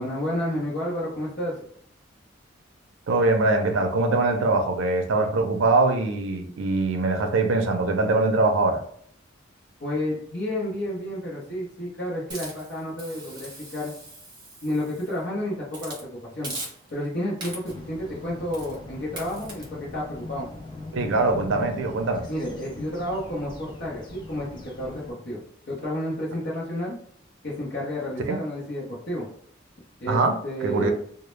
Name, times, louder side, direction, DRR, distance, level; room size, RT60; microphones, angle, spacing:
voice 1, 0.0-1.6 9.8-13.9 14.6-16.5 16.9-20.5 22.3-26.9 27.4-29.3 30.0-30.9, left 1 dB, 55° left, -7 dB, 0.7 m, -31 dB
voice 2, 3.1-8.8 20.9-22.3 28.3-28.4 30.1-30.9, right 3 dB, 80° right, 5 dB, 0.4 m, -23 dB
Hiss, 12.3-15.2 15.7-16.0 16.4-17.1 17.4-17.9 18.5-18.8 19.2-19.6, right 2 dB, 25° right, 0.8 m, -40 dB
sound 1, 17.7-25.1, left 2 dB, 25° left, 0.3 m, -41 dB
2.0 x 2.0 x 3.0 m, 0.62 s
head